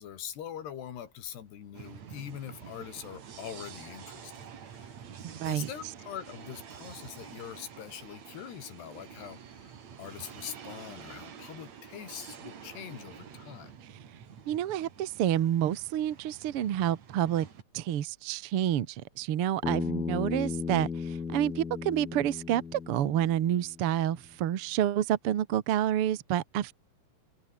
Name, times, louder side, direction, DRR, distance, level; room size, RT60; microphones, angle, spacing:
voice 1, 0.0-4.3 4.6-5.0 5.5-13.7, left 9 dB, 90° left, 4.8 m, -43 dB
sound 1, 1.7-17.6, right 7 dB, 50° right, 3.3 m, -48 dB
voice 2, 5.2-5.7 14.5-17.5 17.7-26.7, right 11 dB, 80° right, 1.2 m, -29 dB
Bass guitar, 19.6-24.0, left 5 dB, 65° left, 6.8 m, -35 dB
open air
omnidirectional pair, 4.6 m